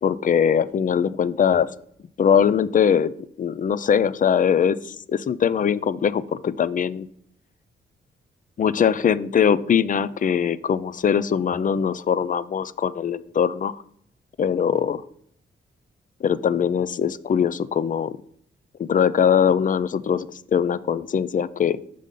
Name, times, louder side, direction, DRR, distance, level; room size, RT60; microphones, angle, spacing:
voice 1, 0.0-1.7 2.2-3.1 3.4-7.1 8.6-13.8 14.4-15.0 16.2-18.2 18.8-20.3 20.5-21.8, left 7 dB, 40° left, 17 dB, 0.4 m, -21 dB
5.3 x 5.0 x 3.7 m, 0.67 s
supercardioid pair, 55°, 21 cm